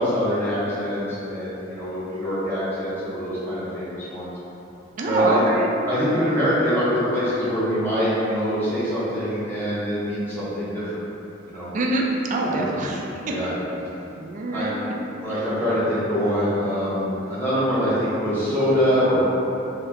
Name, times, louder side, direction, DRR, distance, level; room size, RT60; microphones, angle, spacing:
voice 1, 0.0-4.3 5.1-5.4 5.8-10.8 11.5-11.7 12.5-12.6 13.3-13.5 14.5-14.7 15.2-19.2, equal, 10° left, -12 dB, 0.7 m, -24 dB
voice 2, 5.0-5.7 11.7-12.0 12.3-13.0 14.2-14.8, right 2 dB, 40° right, -1 dB, 0.3 m, -24 dB
2.8 x 2.3 x 3.5 m, 3.0 s
head